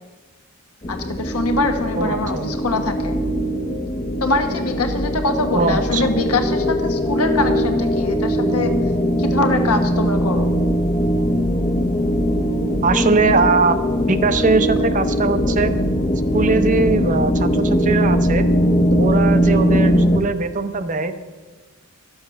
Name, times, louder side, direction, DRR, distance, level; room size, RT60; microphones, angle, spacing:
sound 1, 0.8-20.2, equal, 25° left, 0.6 m, -20 dB
voice 1, 0.9-3.2 4.2-8.7 9.2-10.5, left 2 dB, 90° left, 5 dB, 1.3 m, -23 dB
voice 2, 1.9-2.5 5.5-6.0 12.8-15.7 16.3-18.5 18.9-21.3, right 3 dB, 35° right, 10 dB, 0.6 m, -20 dB
11.5 x 7.1 x 6.5 m, 1.3 s
head